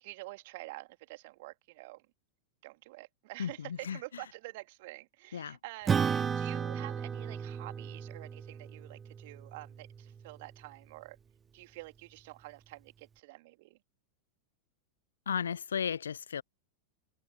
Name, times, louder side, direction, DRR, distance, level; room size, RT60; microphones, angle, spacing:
voice 1, 0.0-2.0 2.6-11.2 11.5-13.8, right 21 dB, 50° right, 2.8 m, -48 dB
voice 2, 3.4-4.0 5.3-5.6 15.3-16.4, left 7 dB, 70° left, 0.6 m, -34 dB
Acoustic guitar / Strum, 5.9-10.6, right 6 dB, 20° right, 1.8 m, -34 dB
figure-of-eight pair, 90°, 0 cm